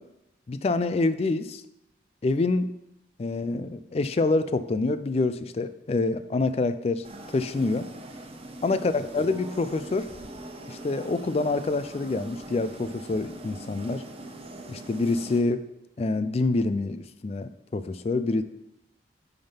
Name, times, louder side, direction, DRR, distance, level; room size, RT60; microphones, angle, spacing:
voice 1, 0.5-1.6 2.2-2.7 3.2-7.1 7.3-7.9 8.6-10.1 10.7-14.0 14.7-15.6 16.0-18.4, left 3 dB, 35° left, 12 dB, 0.3 m, -26 dB
sound 1, 7.0-15.4, right 1 dB, 30° right, 0.8 m, -42 dB
8.8 x 3.5 x 5.6 m, 0.88 s
head